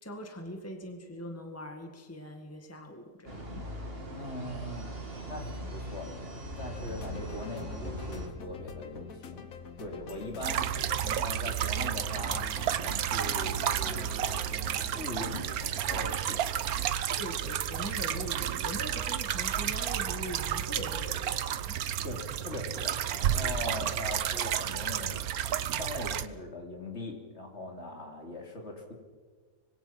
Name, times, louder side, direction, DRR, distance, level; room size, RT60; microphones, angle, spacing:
voice 1, 0.0-3.9 10.1-10.2 11.6-11.7 17.2-21.8, equal, 10° left, 4 dB, 1.9 m, -42 dB
sound 1, 3.3-8.3, right 1 dB, 40° right, 3.0 m, -40 dB
voice 2, 4.1-4.9 5.3-6.1 6.6-9.5 9.8-10.7 11.2-14.5 14.9-15.4 15.9-16.5 22.0-25.3 25.7-28.9, left 2 dB, 50° left, 2 dB, 3.4 m, -40 dB
sound 2, 6.7-16.1, left 4 dB, 70° left, 1.7 m, -45 dB
sound 3, 10.4-26.3, right 10 dB, 85° right, 1.3 m, -31 dB
25.0 x 21.5 x 6.0 m, 1.5 s
omnidirectional pair, 1.5 m